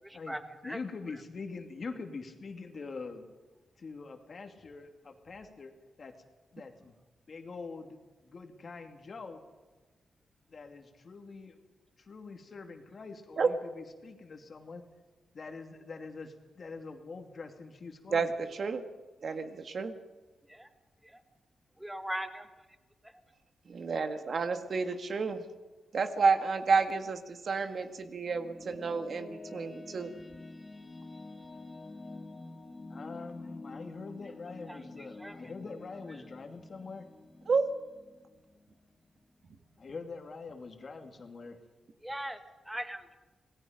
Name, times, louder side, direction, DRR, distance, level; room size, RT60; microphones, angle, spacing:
voice 1, 0.0-0.8 20.5-20.7 21.0-21.2 21.8-22.5 23.0-23.1 34.7-35.4 42.0-42.4 42.6-43.2, right 1 dB, 5° right, 8 dB, 1.8 m, -40 dB
voice 2, 0.6-3.3 3.8-5.7 6.0-6.1 6.5-6.9 7.3-8.0 8.2-9.4 10.5-11.7 12.0-14.8 15.3-18.3 32.9-37.1 39.8-41.6, left 4 dB, 45° left, 4 dB, 2.7 m, -44 dB
voice 3, 18.1-18.8 19.2-20.0 23.7-25.4 25.9-30.1 37.5-37.7, right 4 dB, 50° right, 7 dB, 1.9 m, -30 dB
sound 1, 27.8-39.1, left 2 dB, 25° left, 2.4 m, -48 dB
27.0 x 19.0 x 5.2 m, 1.2 s
cardioid pair, 110°, 0 cm